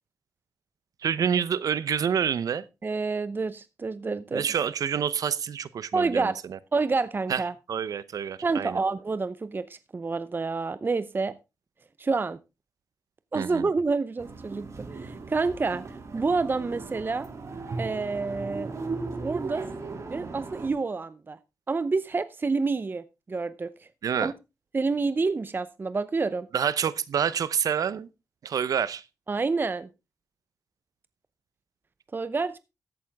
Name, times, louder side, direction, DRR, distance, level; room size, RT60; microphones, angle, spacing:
voice 1, 1.0-2.6 4.3-6.6 7.3-7.4 7.7-8.8 13.3-13.7 24.0-24.3 26.5-28.1 28.4-29.0, right 7 dB, 75° right, 0.8 m, -27 dB
voice 2, 2.8-4.5 5.9-6.4 6.7-7.5 8.4-11.4 12.0-12.4 13.3-15.8 16.1-17.3 17.8-18.7 19.2-19.6 20.1-21.4 21.7-23.7 24.2-24.3 24.7-26.5 29.3-29.9 32.1-32.6, right 4 dB, 35° right, 0.6 m, -28 dB
sound 1, 14.2-20.7, right 3 dB, 55° right, 2.6 m, -37 dB
14.0 x 8.7 x 3.5 m
cardioid pair, 75°, 6 cm